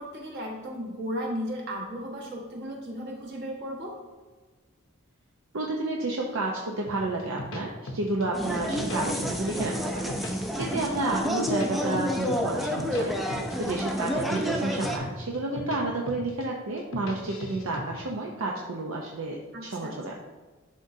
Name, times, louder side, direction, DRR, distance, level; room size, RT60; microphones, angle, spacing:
voice 1, 0.0-4.0 13.9-14.0 19.5-20.0, equal, 55° right, -2 dB, 1.5 m, -35 dB
voice 2, 5.5-13.1 13.6-20.1, right 2 dB, 75° right, -1 dB, 0.7 m, -31 dB
sound 1, 6.9-8.2 8.6-9.7 9.9-10.9 11.3-13.0 13.3-13.6 14.0-15.8 16.1-16.4 16.8-17.8, left 1 dB, 65° left, 0.8 m, -37 dB
sound 2, 8.3-15.0, equal, ahead, 0.5 m, -29 dB
11.0 x 3.7 x 2.7 m, 1.3 s
head